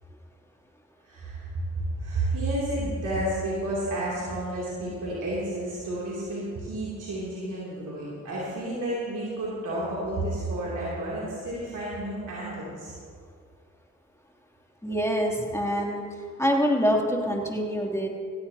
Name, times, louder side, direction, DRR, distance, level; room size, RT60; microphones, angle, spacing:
voice 1, 1.0-12.9, right 1 dB, 90° right, -8 dB, 2.9 m, -31 dB
voice 2, 14.8-16.0 16.4-18.1, equal, 10° left, -1 dB, 2.8 m, -25 dB
16.5 x 15.5 x 2.8 m, 2.1 s
cardioid pair, 40°, 30 cm